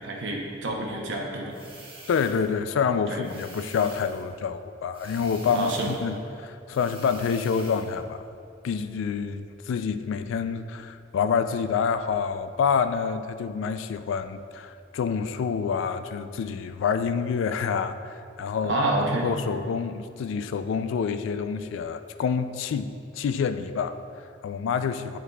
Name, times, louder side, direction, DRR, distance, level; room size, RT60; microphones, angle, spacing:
voice 1, 0.0-1.5 3.1-3.2 5.5-5.9 18.6-19.3, right 2 dB, 65° right, -1 dB, 0.8 m, -28 dB
sound 1, 1.5-2.6 3.2-4.3 4.9-6.1 6.7-8.0, right 2 dB, 30° right, 1.0 m, -47 dB
voice 2, 2.1-8.2 8.6-18.7 19.2-25.2, left 6 dB, 70° left, 10 dB, 0.3 m, -27 dB
11.0 x 4.0 x 2.3 m, 2.6 s
head